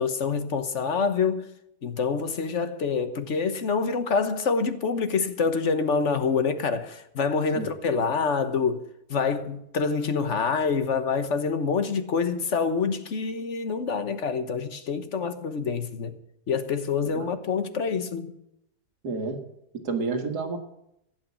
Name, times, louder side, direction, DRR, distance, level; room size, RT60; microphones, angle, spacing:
voice 1, 0.0-1.5 1.8-8.8 9.1-16.1 16.5-18.3, left 5 dB, 50° left, 1.4 m, -26 dB
voice 2, 19.0-19.4 19.8-20.6, right 4 dB, 80° right, 2.2 m, -29 dB
14.5 x 8.6 x 8.2 m
omnidirectional pair, 1.7 m